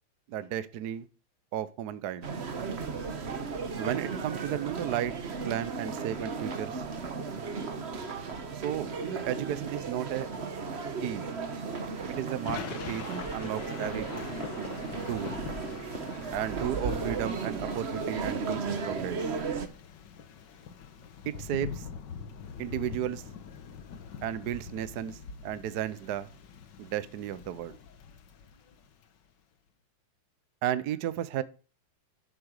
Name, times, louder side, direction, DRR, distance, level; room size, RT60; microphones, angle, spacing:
voice 1, 0.3-1.1 1.5-2.3 3.8-5.2 5.4-6.8 8.5-10.3 11.0-11.2 12.1-14.1 14.6-15.3 16.3-19.3 21.2-21.9 22.6-23.2 24.2-26.3 26.8-27.8 30.6-31.4, right 11 dB, 60° right, 1.1 m, -34 dB
sound 1, 2.2-19.7, right 4 dB, 40° right, 1.1 m, -35 dB
Thunder / Rain, 11.6-29.1, left 6 dB, 60° left, 1.7 m, -44 dB
11.0 x 7.8 x 6.5 m
omnidirectional pair, 2.4 m